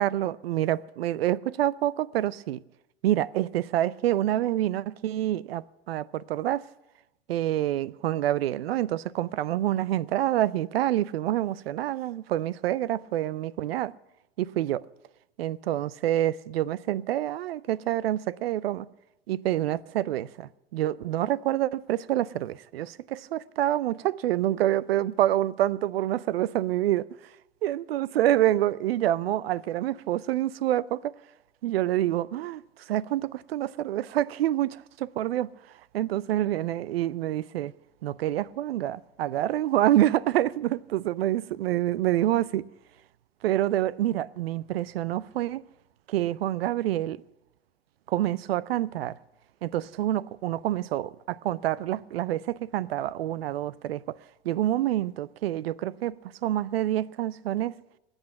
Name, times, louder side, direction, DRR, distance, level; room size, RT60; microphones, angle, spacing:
voice 1, 0.0-2.6 3.0-6.7 7.3-13.9 14.4-14.8 15.4-18.9 19.3-27.1 27.6-31.1 31.6-35.5 35.9-37.7 38.0-42.7 43.4-45.6 46.1-47.2 48.1-49.2 49.6-54.2 54.4-56.1 56.4-57.8, right 13 dB, 75° right, 0.6 m, -27 dB
20.0 x 8.1 x 8.6 m
hypercardioid pair, 90°, 31 cm